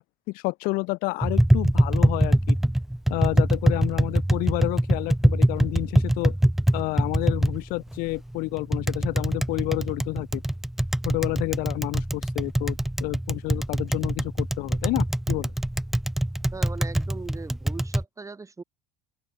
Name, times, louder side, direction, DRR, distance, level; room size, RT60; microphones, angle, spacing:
voice 1, 0.0-2.6 3.1-6.3 6.7-10.4 11.0-15.5, left 24 dB, 60° left, 1.3 m, -30 dB
Tap, 1.2-18.0, right 1 dB, ahead, 0.4 m, -24 dB
voice 2, 16.5-18.6, right 4 dB, 20° right, 2.6 m, -39 dB
open air
hypercardioid pair, 75°, 17 cm